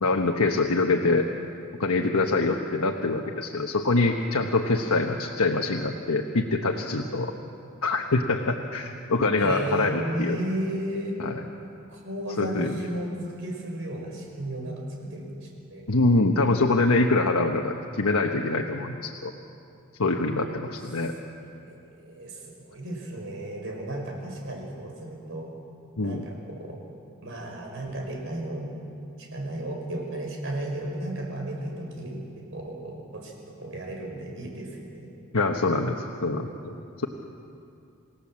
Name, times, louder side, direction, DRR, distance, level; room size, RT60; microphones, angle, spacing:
voice 1, 0.0-1.3 1.8-7.3 7.8-10.4 11.2-11.4 12.4-12.8 15.9-19.3 20.0-21.1 26.0-26.3 35.3-36.8, left 3 dB, 85° left, 2 dB, 1.2 m, -24 dB
voice 2, 9.4-11.2 11.9-15.9 21.5-25.5 26.0-26.8 27.2-28.7 29.2-33.3 33.6-35.1, right 1 dB, 65° right, 0 dB, 5.7 m, -34 dB
28.0 x 17.5 x 7.5 m, 2.6 s
head